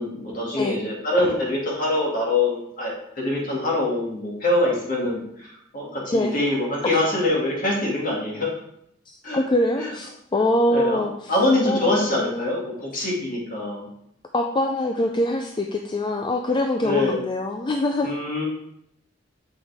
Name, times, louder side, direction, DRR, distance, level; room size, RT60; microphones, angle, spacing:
voice 1, 0.0-8.5 9.2-9.4 9.8-9.9 10.7-13.9 16.8-17.2 18.0-18.4, left 1 dB, 45° left, -3 dB, 2.3 m, -24 dB
voice 2, 9.1-11.3 11.6-12.0 12.2-12.4 14.3-18.1, left 1 dB, 25° left, 3 dB, 0.5 m, -24 dB
8.0 x 5.6 x 3.5 m, 0.75 s
head